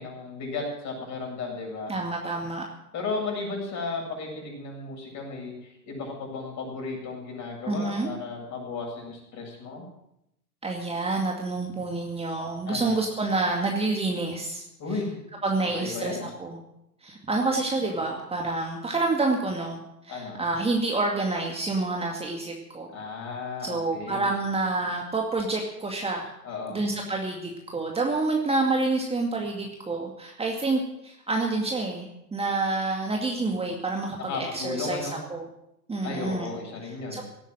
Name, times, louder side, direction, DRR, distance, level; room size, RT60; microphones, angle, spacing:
voice 1, 0.0-1.9 2.9-9.8 12.7-13.0 14.8-15.1 15.7-16.3 20.1-20.4 22.9-24.3 26.4-26.8 34.2-35.2 36.0-37.2, left 3 dB, 35° left, 0 dB, 7.7 m, -34 dB
voice 2, 1.9-2.6 7.7-8.1 10.6-14.6 15.4-16.6 17.0-22.9 23.6-26.3 26.7-35.4 35.9-36.5 37.1-37.2, right 3 dB, 10° right, 0 dB, 2.3 m, -28 dB
18.0 x 9.0 x 7.8 m, 0.82 s
hypercardioid pair, 100°, 48 cm